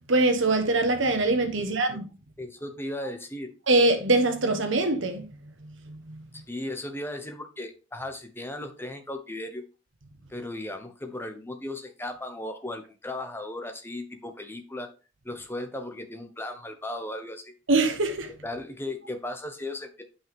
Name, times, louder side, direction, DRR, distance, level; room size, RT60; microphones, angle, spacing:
voice 1, 0.1-2.1 3.7-6.2 17.7-18.3, right 2 dB, 70° right, 1.3 m, -24 dB
voice 2, 2.4-3.5 6.3-9.6 10.3-14.9 15.2-17.5 18.4-20.0, left 1 dB, 10° left, 1.1 m, -36 dB
8.7 x 5.7 x 3.6 m
head